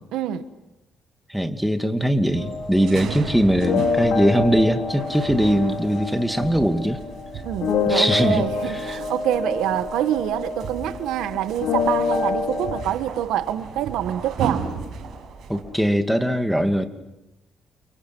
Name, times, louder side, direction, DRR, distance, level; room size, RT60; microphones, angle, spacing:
voice 1, 0.1-0.4 7.4-14.6, right 11 dB, 90° right, 11 dB, 1.5 m, -26 dB
voice 2, 1.3-7.0 7.9-9.0 15.5-16.9, equal, ahead, 7 dB, 2.5 m, -21 dB
sound 1, 2.4-12.8, left 5 dB, 85° left, 5.1 m, -27 dB
sound 2, 2.4-15.6, right 6 dB, 70° right, 7.6 m, -36 dB
30.0 x 28.5 x 6.3 m, 0.93 s
cardioid pair, 90°, 0 cm